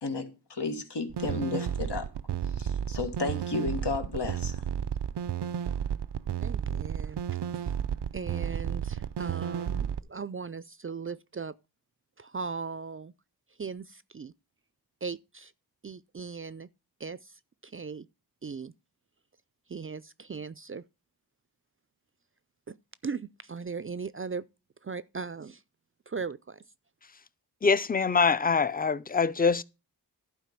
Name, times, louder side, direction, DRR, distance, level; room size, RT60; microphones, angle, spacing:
voice 1, 0.0-2.1 2.5-4.6, left 3 dB, 90° left, 1.6 m, -33 dB
sound 1, 1.1-10.0, right 9 dB, 85° right, 0.5 m, -32 dB
voice 2, 6.4-7.2 7.5-7.6 8.1-11.5 12.2-13.1 13.6-14.3 15.0-15.5 15.8-16.7 17.0-18.1 18.4-18.7 19.7-20.8 22.7-22.8 23.0-24.5 24.8-25.6 26.1-26.6, right 5 dB, 35° right, 0.4 m, -38 dB
voice 3, 27.6-29.6, left 5 dB, 25° left, 0.5 m, -24 dB
11.5 x 4.6 x 5.9 m
wide cardioid pair, 55°, 40 cm